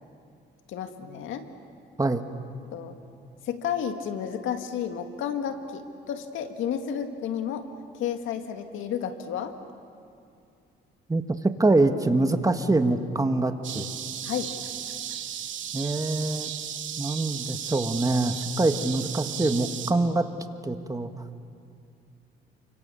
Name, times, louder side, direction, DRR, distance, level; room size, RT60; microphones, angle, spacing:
voice 1, 0.7-1.4 2.7-3.0 3.5-7.7 8.0-9.5 14.2-14.5, left 8 dB, 85° left, 6 dB, 1.9 m, -31 dB
voice 2, 11.6-13.9 15.7-16.5 17.0-20.3 20.6-21.1, right 2 dB, 15° right, 7 dB, 1.6 m, -24 dB
sound 1, 13.6-19.9, right 9 dB, 75° right, 1.9 m, -35 dB
29.0 x 25.5 x 7.1 m, 2.4 s
cardioid pair, 90°, 20 cm